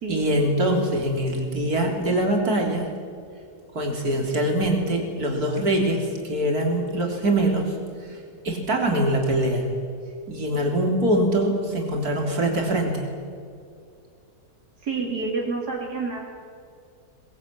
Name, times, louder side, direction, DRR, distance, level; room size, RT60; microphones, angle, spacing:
voice 1, 0.1-2.9 3.7-7.8 8.0-8.2 8.4-9.7 10.3-13.1, right 1 dB, 70° right, 1 dB, 4.0 m, -23 dB
voice 2, 14.8-16.2, right 4 dB, 90° right, -1 dB, 3.3 m, -28 dB
22.0 x 21.0 x 8.9 m, 2.3 s
omnidirectional pair, 1.6 m